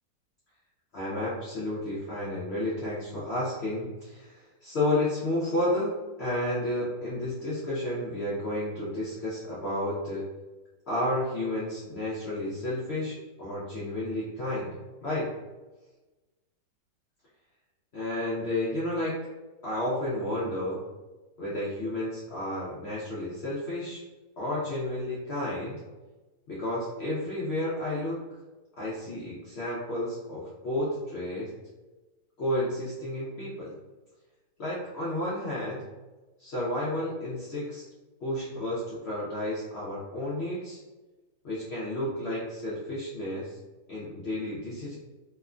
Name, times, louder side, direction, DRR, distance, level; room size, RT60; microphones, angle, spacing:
voice 1, 0.9-5.9 6.2-10.3 10.9-14.8 15.0-15.3 17.9-19.2 19.6-20.8 21.4-24.0 24.4-25.8 26.5-28.2 28.8-31.5 32.4-33.7 34.6-35.8 36.4-37.9 38.2-40.8 41.4-43.6 43.9-45.0, left 1 dB, 70° left, -7 dB, 0.6 m, -31 dB
2.9 x 2.1 x 2.4 m, 1.2 s
omnidirectional pair, 1.8 m